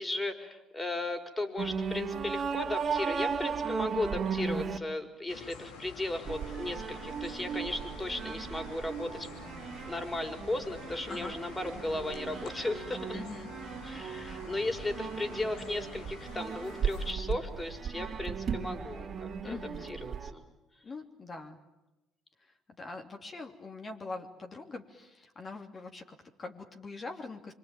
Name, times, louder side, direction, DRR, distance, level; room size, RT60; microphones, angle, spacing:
voice 1, 0.0-9.3 9.9-13.2 13.8-19.6 19.9-20.4, left 2 dB, 20° left, 6 dB, 4.8 m, -36 dB
sound 1, 1.6-4.8 6.3-20.3, right 6 dB, 45° right, 3.1 m, -36 dB
sound 2, 5.3-17.1, left 5 dB, 80° left, 3.4 m, -48 dB
voice 2, 11.1-11.4 13.1-13.5 19.4-19.9 20.8-21.6 22.4-27.5, left 3 dB, 35° left, 3 dB, 3.0 m, -43 dB
26.0 x 24.5 x 9.1 m, 1.0 s
hypercardioid pair, 65°, 0 cm